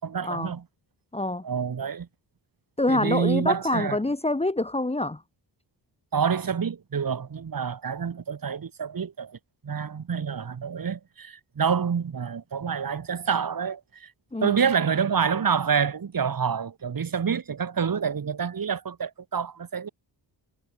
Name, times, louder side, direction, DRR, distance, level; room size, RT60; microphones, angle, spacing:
voice 1, 0.0-0.6 1.4-2.1 2.9-4.0 6.1-9.4 9.6-14.1 14.4-19.9, right 6 dB, 50° right, 3.4 m, -27 dB
voice 2, 1.1-1.4 2.8-5.2 14.3-14.6, left 2 dB, 15° left, 1.8 m, -26 dB
wide cardioid pair, 130°, 44 cm